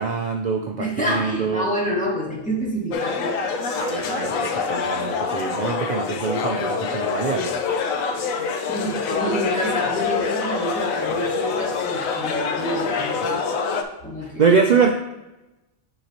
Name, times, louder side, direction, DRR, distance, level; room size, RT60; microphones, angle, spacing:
voice 1, 0.0-1.7 3.8-7.5 13.2-13.4 14.2-14.9, right 5 dB, 90° right, 3 dB, 0.3 m, -24 dB
voice 2, 0.8-3.4 3.7-3.9 8.7-13.4 14.0-14.4, equal, 5° left, -5 dB, 1.8 m, -28 dB
sound 1, 2.9-13.8, left 5 dB, 90° left, 1.1 m, -25 dB
9.0 x 4.9 x 2.9 m, 1.0 s
omnidirectional pair, 1.4 m